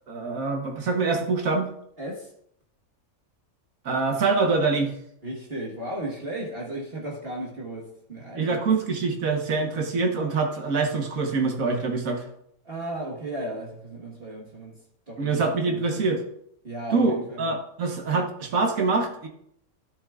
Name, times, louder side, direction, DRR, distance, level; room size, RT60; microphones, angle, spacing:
voice 1, 0.1-1.7 3.8-4.9 8.4-12.2 15.2-16.2 16.9-19.3, right 4 dB, 65° right, 3 dB, 1.5 m, -25 dB
voice 2, 2.0-2.3 5.2-8.6 12.6-14.8 15.1-15.3 15.7-16.0 16.6-17.5, right 1 dB, 40° right, -4 dB, 1.6 m, -35 dB
12.0 x 7.0 x 2.4 m, 0.72 s
omnidirectional pair, 1.5 m